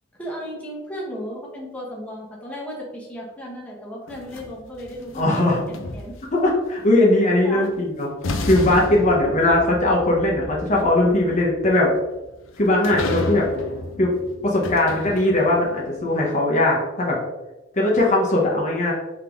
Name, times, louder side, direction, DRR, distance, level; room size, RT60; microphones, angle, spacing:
voice 1, 0.2-6.1 7.4-7.7, equal, 5° left, -4 dB, 0.9 m, -35 dB
sound 1, 4.1-6.5 7.7-7.8 8.2-15.7, left 2 dB, 75° left, 0.5 m, -32 dB
voice 2, 5.1-5.6 6.3-8.1 8.5-11.9 12.6-13.5 14.0-14.1 14.4-17.2 17.7-18.9, left 1 dB, 40° left, -2 dB, 0.8 m, -19 dB
3.6 x 3.5 x 3.4 m, 1.0 s
head